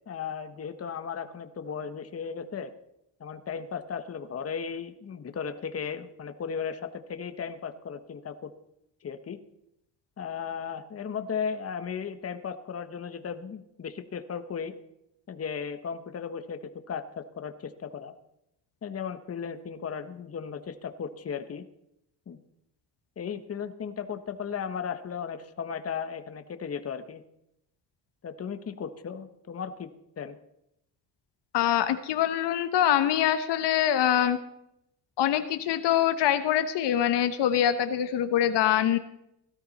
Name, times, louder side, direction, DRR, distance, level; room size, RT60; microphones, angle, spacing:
voice 1, 0.1-2.7 3.2-8.5 9.0-9.4 10.2-14.7 15.3-16.6 16.9-18.1 18.8-21.6 22.3-22.4 23.2-27.2 28.2-29.9 30.2-30.4, left 7 dB, 35° left, 9 dB, 1.2 m, -36 dB
voice 2, 31.5-34.4 35.2-39.0, left 10 dB, 75° left, 10 dB, 1.1 m, -24 dB
17.5 x 13.0 x 4.1 m, 0.80 s
cardioid pair, 105°, 42 cm